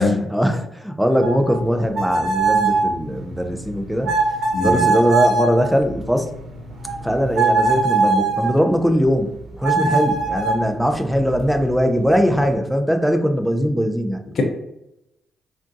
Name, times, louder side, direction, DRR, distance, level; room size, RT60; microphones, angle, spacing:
voice 1, 0.0-4.1 4.6-6.3 7.0-14.2, equal, ahead, 5 dB, 0.5 m, -20 dB
sound 1, 1.2-8.6 9.6-12.6, right 4 dB, 60° right, 1.0 m, -23 dB
voice 2, 4.5-4.8 9.8-9.9 14.4-14.5, left 3 dB, 55° left, 2 dB, 0.6 m, -21 dB
3.5 x 2.5 x 2.6 m, 0.86 s
supercardioid pair, 65°, 0 cm